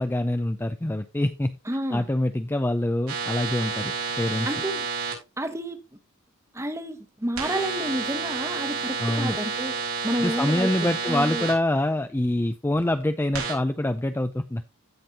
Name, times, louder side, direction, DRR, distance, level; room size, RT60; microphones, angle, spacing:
voice 1, 0.0-1.5 1.9-4.5 9.0-9.4 10.2-14.6, left 1 dB, 10° left, 0.4 m, -25 dB
voice 2, 1.7-2.0 4.4-4.9 5.4-5.8 6.5-9.8 10.0-11.5, right 1 dB, 15° right, 1.1 m, -30 dB
sound 1, 3.1-5.1 7.4-11.5 13.3-13.5, right 5 dB, 90° right, 5.2 m, -30 dB
16.0 x 5.3 x 2.8 m
head